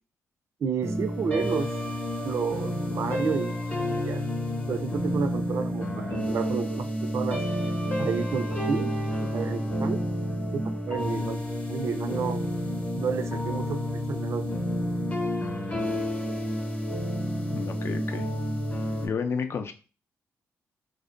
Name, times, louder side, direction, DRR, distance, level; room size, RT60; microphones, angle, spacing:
voice 1, 0.6-1.7 2.2-3.6 3.9-4.2 4.7-7.5 8.0-8.9 9.2-10.0 10.5-12.4 13.0-14.6, right 6 dB, 55° right, 0.3 m, -31 dB
sound 1, 0.8-19.1, equal, 25° left, 0.8 m, -30 dB
voice 2, 17.5-18.3 19.0-19.7, left 5 dB, 50° left, 0.4 m, -31 dB
2.5 x 2.1 x 2.4 m
cardioid pair, 75°, 6 cm